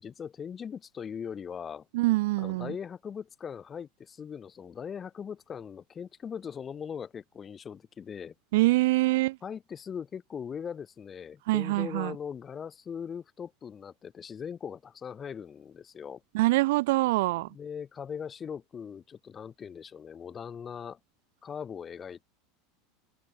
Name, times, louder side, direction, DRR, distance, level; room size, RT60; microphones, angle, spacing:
voice 1, 0.0-1.8 2.4-8.3 9.4-16.2 17.4-21.0 21.4-22.2, left 7 dB, 20° left, 2.6 m, -40 dB
voice 2, 1.9-2.7 8.5-9.4 11.5-12.1 16.3-17.5, right 20 dB, 75° right, 0.5 m, -24 dB
open air
supercardioid pair, 155°, 0 cm